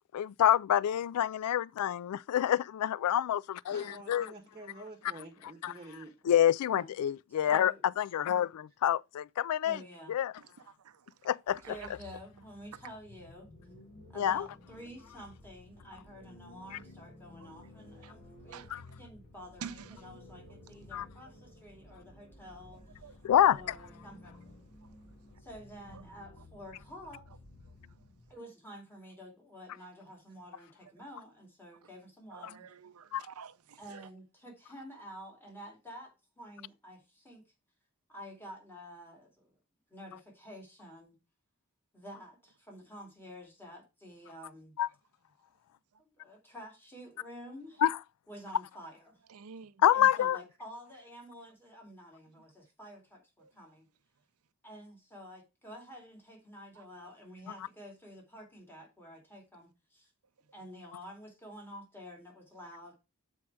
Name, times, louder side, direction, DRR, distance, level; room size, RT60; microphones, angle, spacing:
voice 1, 0.1-4.3 5.6-5.7 6.3-9.8 10.1-10.3 11.2-11.6 14.2-14.5 18.7-18.8 20.9-21.1 23.2-23.6 33.1-33.3 44.8-44.9 47.8-48.0 49.8-50.4, left 10 dB, 90° left, 0.3 m, -27 dB
voice 2, 3.7-6.3 16.7-16.9, right 2 dB, 20° right, 1.2 m, -49 dB
voice 3, 7.3-7.8 9.6-10.1 11.6-13.5 14.1-18.7 19.0-23.2 23.5-24.4 25.4-27.2 28.3-32.7 33.8-37.4 38.1-39.5 39.9-41.2 41.9-44.7 46.0-47.8 48.3-49.2 49.9-53.9 54.6-60.1 60.5-62.9, equal, 10° left, 2.5 m, -50 dB
sound 1, 11.5-28.3, left 1 dB, 50° left, 3.0 m, -54 dB
voice 4, 18.5-18.8 19.6-20.0 23.0-23.2 25.9-26.0 32.3-34.1 49.3-49.8 53.4-53.5, right 6 dB, 80° right, 0.6 m, -48 dB
7.3 x 4.6 x 4.6 m
head